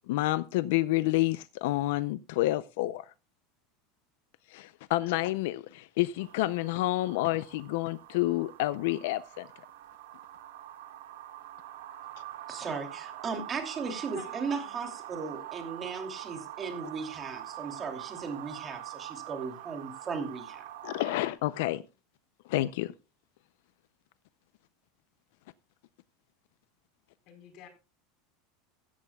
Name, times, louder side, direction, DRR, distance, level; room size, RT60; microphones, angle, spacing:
voice 1, 0.1-3.0 4.5-9.5 20.8-21.8 22.5-22.9, left 17 dB, 70° left, 0.5 m, -29 dB
sound 1, 6.2-21.3, right 13 dB, 85° right, 2.1 m, -44 dB
voice 2, 12.5-20.6, right 5 dB, 20° right, 2.7 m, -37 dB
voice 3, 14.1-14.7 27.3-27.7, left 10 dB, 45° left, 4.3 m, -49 dB
16.0 x 13.5 x 2.3 m
supercardioid pair, 160°, 0 cm